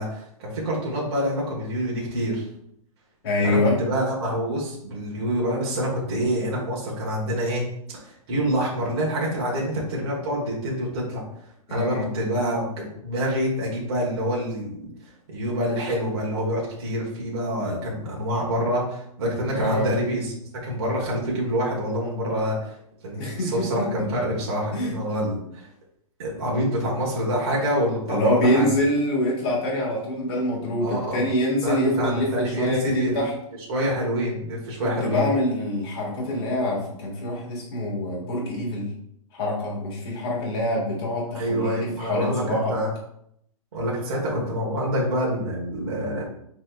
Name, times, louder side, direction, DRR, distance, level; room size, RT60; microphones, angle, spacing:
voice 1, 0.0-2.5 3.4-7.6 8.0-11.2 11.7-14.9 15.3-22.8 23.0-25.7 26.2-28.7 30.8-31.3 31.6-33.2 33.7-35.3 41.3-42.9 43.7-46.2, equal, 45° right, -3 dB, 1.3 m, -26 dB
voice 2, 3.2-3.8 11.7-12.0 19.5-19.9 23.2-23.5 24.7-24.9 28.1-33.3 34.8-38.9 39.3-42.7, left 1 dB, 40° left, -4 dB, 1.8 m, -25 dB
4.4 x 4.3 x 2.3 m, 0.74 s
hypercardioid pair, 170°, 19 cm